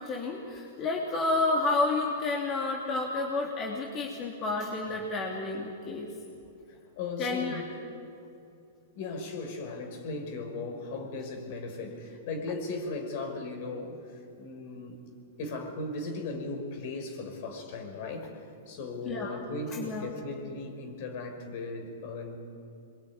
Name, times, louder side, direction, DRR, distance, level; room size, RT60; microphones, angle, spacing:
voice 1, 0.0-6.1 7.2-7.6 19.0-19.4 19.7-20.1, left 3 dB, 30° left, -1 dB, 3.3 m, -30 dB
voice 2, 7.0-7.6 8.9-22.4, left 3 dB, 55° left, 4 dB, 5.4 m, -37 dB
26.0 x 23.0 x 9.8 m, 2.7 s
hypercardioid pair, 135°, 0 cm